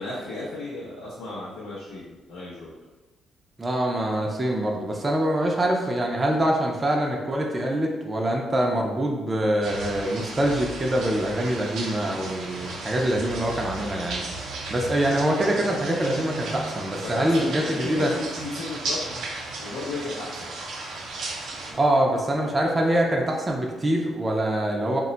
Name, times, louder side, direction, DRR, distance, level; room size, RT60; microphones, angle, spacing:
voice 1, 0.0-2.7 17.0-19.0 19.6-20.5, left 2 dB, 85° left, -7 dB, 0.6 m, -34 dB
voice 2, 3.6-14.2 14.7-18.1 21.7-25.0, right 1 dB, 25° right, 0 dB, 0.4 m, -24 dB
sound 1, 9.6-21.7, right 2 dB, 75° right, 0.5 m, -35 dB
2.1 x 2.0 x 3.8 m, 1.2 s
cardioid pair, 90°, 0 cm